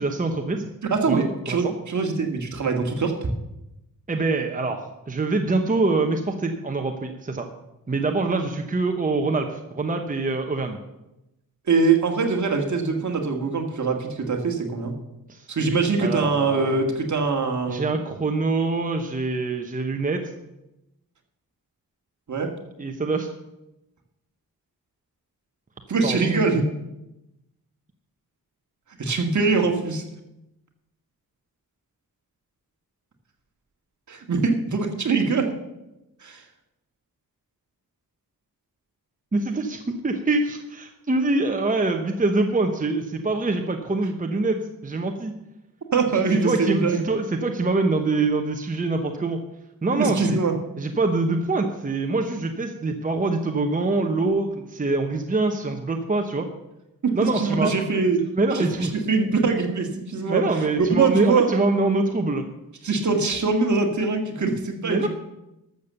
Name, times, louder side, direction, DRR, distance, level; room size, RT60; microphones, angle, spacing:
voice 1, 0.0-0.7 1.1-1.7 4.1-7.5 7.9-10.8 15.3-15.5 16.0-16.9 17.7-20.3 22.8-23.3 26.0-26.2 39.3-45.4 46.4-49.4 49.8-50.4 50.8-56.5 57.1-57.7 58.4-58.9 60.2-62.5 64.8-65.1, right 3 dB, 20° right, 4 dB, 1.0 m, -24 dB
voice 2, 0.8-3.3 11.7-15.0 15.5-17.8 22.3-22.5 25.9-26.7 29.0-30.0 34.1-35.5 36.2-36.5 45.9-47.0 50.0-50.5 57.0-58.3 58.5-61.5 62.8-65.1, right 4 dB, 50° right, 3 dB, 1.9 m, -23 dB
13.0 x 7.0 x 6.8 m, 0.91 s
wide cardioid pair, 100°, 36 cm